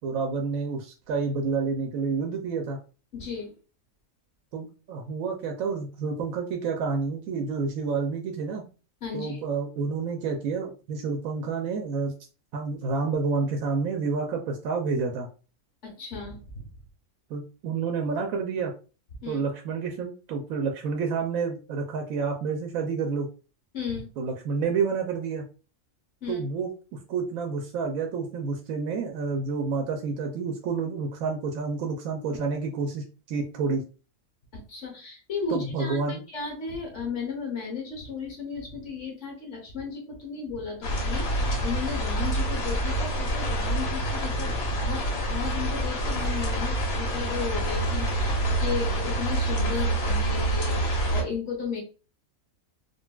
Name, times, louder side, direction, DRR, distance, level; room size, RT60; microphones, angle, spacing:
voice 1, 0.0-2.8 4.5-8.6 9.1-12.1 12.5-15.3 17.3-18.7 19.3-23.3 24.2-25.4 26.3-33.8 35.5-36.2, right 4 dB, 80° right, 3 dB, 1.0 m, -29 dB
voice 2, 3.1-3.5 9.0-9.4 15.8-16.7 19.2-19.4 23.7-24.1 26.2-26.4 34.5-36.0 36.3-51.8, left 5 dB, 60° left, 0 dB, 1.4 m, -35 dB
sound 1, 40.8-51.2, right 1 dB, 75° left, 1.3 m, -27 dB
3.8 x 2.4 x 2.2 m, 0.35 s
omnidirectional pair, 1.5 m